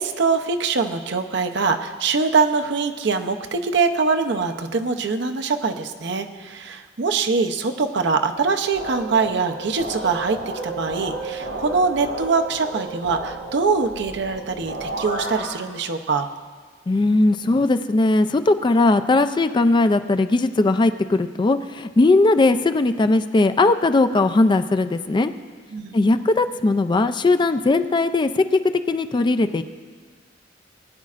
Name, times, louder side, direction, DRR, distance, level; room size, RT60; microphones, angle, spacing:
voice 1, 0.0-10.4 10.6-16.3 25.7-25.9, right 4 dB, 65° right, 6 dB, 0.7 m, -23 dB
sound 1, 8.7-15.5, right 2 dB, 85° right, 3.5 m, -32 dB
voice 2, 16.9-25.3 25.9-28.6 28.9-29.6, left 2 dB, 25° left, 10 dB, 0.3 m, -19 dB
20.0 x 9.5 x 2.5 m, 1.5 s
head